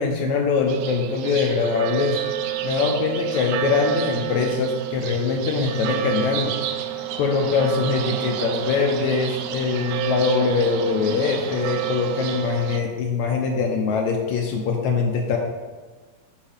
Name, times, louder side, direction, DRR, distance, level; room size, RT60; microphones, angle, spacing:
voice 1, 0.0-2.2 2.6-6.6 7.2-15.4, left 5 dB, 75° left, 2 dB, 1.8 m, -23 dB
sound 1, 0.7-12.8, right 12 dB, 80° right, 1.9 m, -29 dB
sound 2, 6.8-11.5, left 1 dB, 20° right, 0.8 m, -43 dB
9.7 x 5.6 x 3.4 m, 1.3 s
omnidirectional pair, 3.7 m